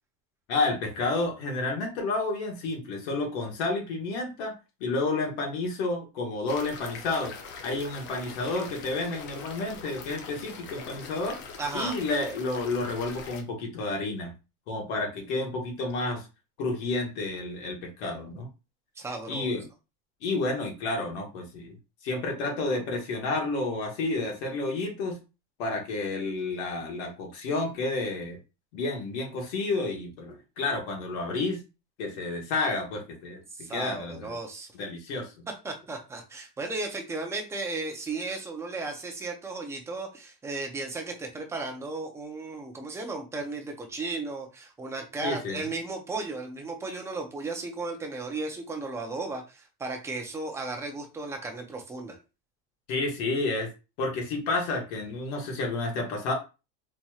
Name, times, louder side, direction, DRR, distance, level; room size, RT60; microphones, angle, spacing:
voice 1, 0.5-4.5 4.8-7.3 7.6-11.4 11.7-14.3 14.7-16.3 16.6-18.5 19.3-19.7 20.2-21.8 22.0-25.2 25.6-28.4 28.7-31.6 32.0-34.3 34.7-35.4 45.2-45.6 52.9-53.7 54.0-56.3, left 3 dB, 75° left, 1 dB, 1.4 m, -30 dB
sound 1, 6.5-13.4, left 5 dB, 35° left, 0.6 m, -43 dB
voice 2, 11.6-12.0 19.0-19.5 33.5-34.7 35.6-52.2, right 3 dB, 10° right, 2 dB, 0.4 m, -35 dB
4.1 x 3.0 x 2.3 m, 0.29 s
cardioid pair, 170°, 33 cm